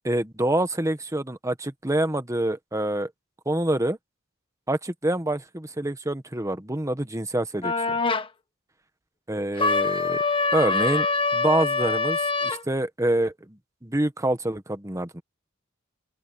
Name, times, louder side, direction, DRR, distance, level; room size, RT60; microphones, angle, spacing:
voice 1, 0.0-3.1 3.4-4.0 4.7-7.7 9.3-10.2 10.5-11.1 11.3-15.2, right 1 dB, 15° right, 1.4 m, -26 dB
sound 1, 7.6-8.3 9.6-12.6, left 3 dB, 25° left, 1.3 m, -24 dB
open air
head